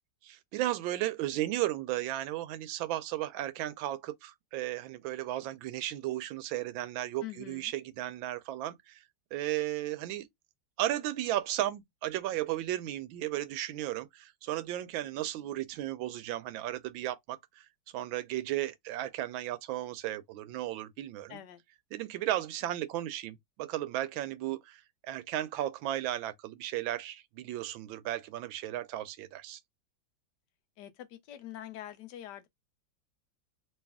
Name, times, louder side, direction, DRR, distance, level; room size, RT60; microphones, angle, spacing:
voice 1, 0.2-9.0 9.3-10.3 10.8-17.6 17.9-21.4 21.9-29.6, right 14 dB, 85° right, 1.3 m, -35 dB
voice 2, 7.2-7.7 21.3-21.6 30.8-32.5, left 12 dB, 70° left, 1.1 m, -45 dB
3.2 x 2.9 x 3.4 m
omnidirectional pair, 2.1 m